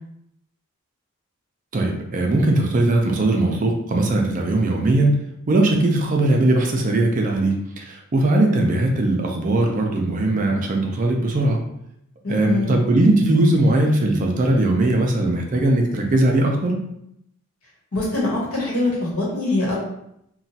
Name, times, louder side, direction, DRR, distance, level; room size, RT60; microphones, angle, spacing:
voice 1, 1.7-5.2 5.5-11.6 12.3-16.8, right 2 dB, 40° right, 1 dB, 0.4 m, -19 dB
voice 2, 12.2-12.8 17.9-19.8, left 2 dB, 85° left, -5 dB, 1.1 m, -23 dB
3.0 x 2.2 x 2.7 m, 0.78 s
head